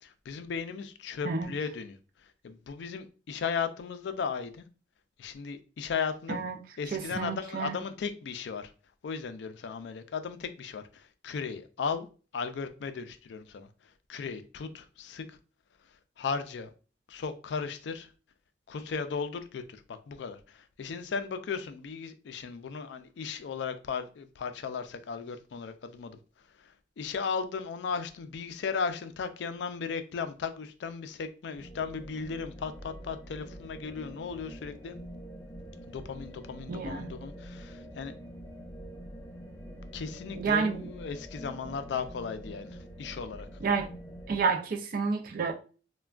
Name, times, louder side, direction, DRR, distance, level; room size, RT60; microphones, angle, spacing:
voice 1, 0.0-4.7 5.2-6.4 6.8-8.7 9.0-12.1 12.3-15.4 16.2-16.7 17.1-18.1 18.7-26.2 26.5-35.0 35.9-38.1 39.9-43.5, left 5 dB, 75° left, 0.4 m, -36 dB
voice 2, 6.9-7.8 36.7-37.1 40.3-40.8 43.6-43.9 44.3-45.5, right 5 dB, 55° right, 0.4 m, -29 dB
sound 1, 31.5-44.4, equal, 15° left, 0.5 m, -45 dB
3.3 x 2.2 x 2.3 m
head